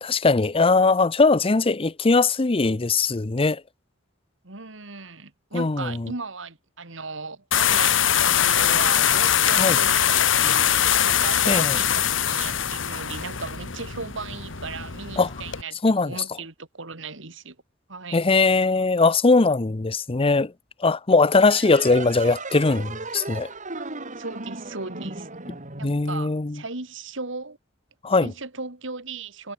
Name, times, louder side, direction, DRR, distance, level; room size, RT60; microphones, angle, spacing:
voice 1, 0.0-3.6 5.5-6.1 9.6-9.8 11.5-11.8 15.2-15.3 15.8-16.1 18.1-20.5 20.8-23.5 25.8-26.5 28.0-28.3, left 3 dB, 30° left, 0.7 m, -20 dB
voice 2, 4.4-17.6 17.9-18.2 23.8-23.9 24.2-25.3 25.8-27.6 28.2-29.5, right 4 dB, 70° right, 2.7 m, -37 dB
sound 1, 7.5-15.6, left 10 dB, 70° left, 1.6 m, -22 dB
sound 2, 21.4-26.6, right 3 dB, 40° right, 7.3 m, -36 dB
head